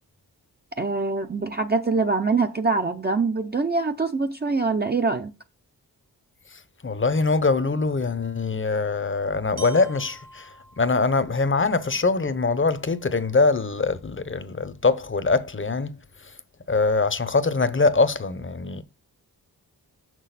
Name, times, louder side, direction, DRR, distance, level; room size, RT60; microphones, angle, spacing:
voice 1, 0.8-5.3, right 3 dB, 25° right, 0.6 m, -24 dB
voice 2, 6.5-15.9 16.2-16.3 16.7-18.8, left 3 dB, 30° left, 0.8 m, -23 dB
Glockenspiel, 9.6-13.5, right 2 dB, 85° right, 2.0 m, -48 dB
6.2 x 6.1 x 4.1 m
cardioid pair, 60°, 38 cm